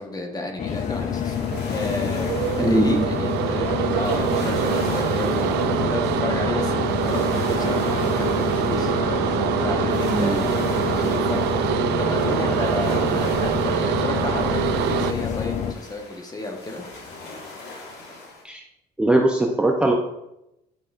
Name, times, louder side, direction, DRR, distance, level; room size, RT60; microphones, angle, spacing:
voice 1, 0.0-1.4 1.7-8.9 9.6-11.5 12.0-16.8, left 2 dB, 20° left, 3 dB, 1.2 m, -32 dB
sound 1, 0.6-15.7, left 7 dB, 45° left, 0.6 m, -27 dB
sound 2, 0.7-18.4, left 3 dB, 80° left, 1.7 m, -40 dB
sound 3, 1.5-15.1, right 11 dB, 80° right, 0.4 m, -25 dB
voice 2, 2.6-3.0 10.1-10.4 18.4-18.6 19.0-19.9, right 1 dB, 5° right, 1 dB, 0.6 m, -20 dB
9.6 x 5.3 x 2.5 m, 0.88 s
cardioid pair, 110°, 17 cm